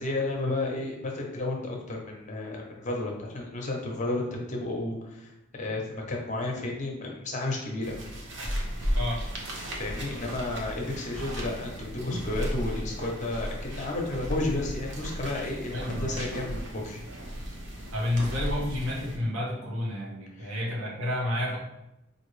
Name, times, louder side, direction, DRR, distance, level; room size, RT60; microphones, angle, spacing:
voice 1, 0.0-7.9 9.8-17.0 20.4-20.5, left 2 dB, 35° left, 0 dB, 0.7 m, -32 dB
sound 1, 7.8-19.2, equal, 55° right, 0.8 m, -35 dB
voice 2, 8.9-9.3 15.7-16.3 17.9-21.6, left 1 dB, 90° right, -3 dB, 1.1 m, -30 dB
4.9 x 2.6 x 3.2 m, 0.90 s
head